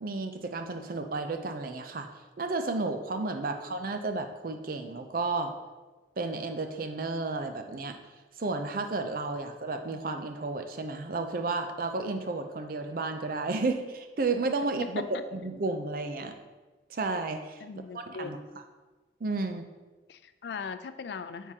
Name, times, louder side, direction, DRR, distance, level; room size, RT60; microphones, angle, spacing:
voice 1, 0.0-2.1 2.4-5.5 6.2-8.0 8.4-15.0 15.3-16.3 16.9-17.6 17.9-18.4 19.2-19.6, right 3 dB, 50° right, 6 dB, 0.5 m, -32 dB
voice 2, 14.8-15.2 17.6-18.6 20.1-21.5, left 5 dB, 65° left, 11 dB, 0.4 m, -39 dB
9.3 x 3.7 x 2.8 m, 1.2 s
head